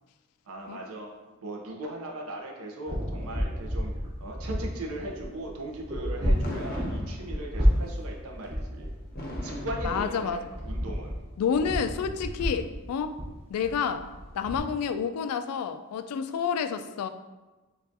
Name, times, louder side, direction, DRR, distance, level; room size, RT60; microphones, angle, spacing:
voice 1, 0.5-1.2 1.4-8.9 9.4-11.1, right 1 dB, 75° right, 1 dB, 0.6 m, -38 dB
sound 1, 2.9-14.6, equal, 25° right, 0.7 m, -31 dB
Fireworks, 6.4-7.7 9.2-10.7, equal, 40° left, 0.5 m, -40 dB
voice 2, 9.8-10.5 11.4-13.2 13.5-14.1 14.3-17.1, left 6 dB, 90° left, 10 dB, 0.3 m, -29 dB
6.5 x 2.4 x 2.6 m, 1.2 s
head